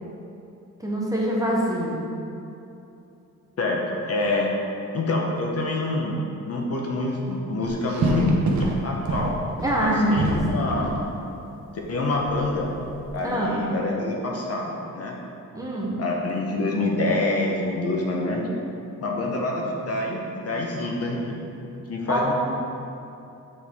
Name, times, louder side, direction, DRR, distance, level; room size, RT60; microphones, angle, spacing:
voice 1, 0.8-2.0 9.6-10.6 13.2-13.6 15.5-16.0 22.1-22.3, equal, 10° right, -4 dB, 0.8 m, -24 dB
voice 2, 3.6-4.5 4.9-6.2 6.4-9.3 9.7-11.0 11.9-12.8 13.1-15.2 16.0-18.5 19.0-21.4 21.9-22.3, left 2 dB, 50° left, -1 dB, 0.8 m, -26 dB
sound 1, 7.6-11.0 12.2-13.1, right 3 dB, 65° right, 0.8 m, -27 dB
8.4 x 4.7 x 3.5 m, 2.8 s
wide cardioid pair, 175°, 32 cm